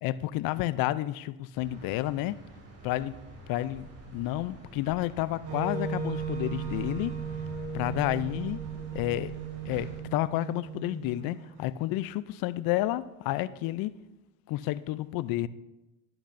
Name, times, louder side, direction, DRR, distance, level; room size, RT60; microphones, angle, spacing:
voice 1, 0.0-2.4 2.8-3.1 3.5-7.1 7.7-8.6 8.9-9.3 9.7-13.9 14.5-15.5, left 15 dB, 65° left, 0.5 m, -30 dB
sound 1, 1.5-10.0, right 2 dB, 40° right, 2.8 m, -46 dB
Wind instrument woodwind instrument, 5.4-11.5, right 6 dB, 75° right, 1.7 m, -36 dB
12.0 x 11.5 x 2.6 m
supercardioid pair, 90°, 38 cm